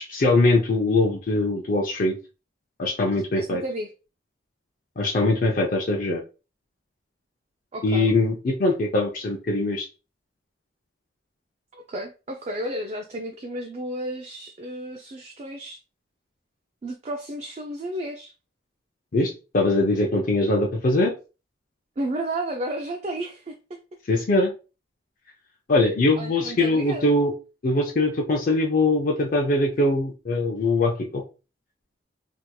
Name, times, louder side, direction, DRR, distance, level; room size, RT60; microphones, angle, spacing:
voice 1, 0.0-2.2 2.8-3.6 5.0-6.2 7.8-9.9 19.1-21.1 24.1-24.5 25.7-27.3 27.6-31.2, left 2 dB, 45° left, 0.5 m, -22 dB
voice 2, 3.4-3.9 7.7-8.1 11.7-15.8 16.8-18.3 22.0-23.8 26.2-27.1, right 1 dB, 35° right, 0.4 m, -32 dB
3.4 x 2.9 x 2.2 m
head